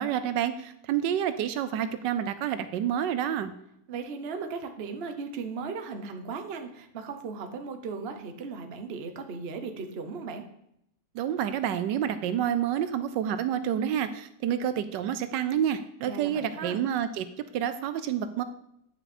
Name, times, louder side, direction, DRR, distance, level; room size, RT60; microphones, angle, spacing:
voice 1, 0.0-3.5 11.1-17.2 17.5-18.4, right 9 dB, 85° right, 11 dB, 1.3 m, -28 dB
voice 2, 3.9-10.4 16.0-16.8, right 4 dB, 45° right, 6 dB, 0.9 m, -37 dB
9.5 x 5.7 x 4.2 m, 0.75 s
omnidirectional pair, 1.9 m